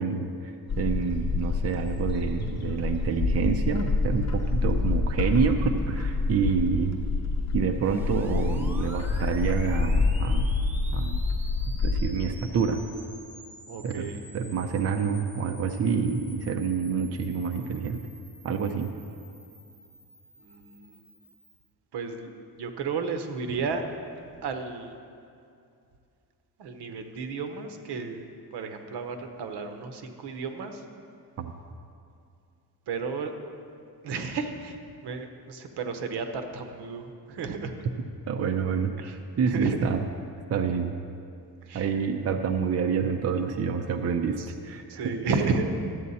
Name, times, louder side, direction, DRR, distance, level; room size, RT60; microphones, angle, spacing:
voice 1, 0.0-7.0 7.5-10.5 10.9-11.2 11.8-12.8 13.8-18.0 18.4-18.9 31.4-31.5 38.3-38.9 39.4-40.0 40.5-40.9 41.7-44.4 44.6-45.3, right 6 dB, 40° right, 6 dB, 0.6 m, -27 dB
Bird, 0.7-12.0, left 3 dB, 40° left, 1.0 m, -27 dB
sound 1, 7.8-21.7, equal, 5° right, 0.8 m, -48 dB
voice 2, 13.7-14.2 20.4-21.0 21.9-22.3 22.6-23.8 24.4-25.0 26.6-28.2 28.5-30.8 32.9-33.3 34.0-37.7 39.0-39.2 39.4-39.8 41.6-41.9 44.3-44.5 44.9-45.7, right 4 dB, 75° right, 6 dB, 1.0 m, -33 dB
12.5 x 8.6 x 4.2 m, 2.4 s
cardioid pair, 135°, 40 cm